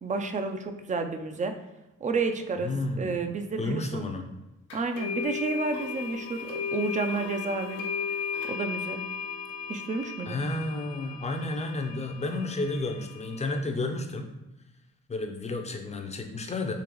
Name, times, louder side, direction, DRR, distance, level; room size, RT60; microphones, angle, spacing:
voice 1, 0.0-1.5 2.0-2.7 3.0-4.1 4.7-7.8 8.5-9.0 9.7-10.4, right 4 dB, 25° right, 6 dB, 0.4 m, -31 dB
voice 2, 2.6-3.1 3.6-4.3 10.3-14.3 15.1-16.7, left 2 dB, 20° left, 4 dB, 0.6 m, -31 dB
sound 1, 4.7-13.6, left 6 dB, 85° left, 1.0 m, -36 dB
3.9 x 2.9 x 3.0 m, 1.0 s
cardioid pair, 90°, 30 cm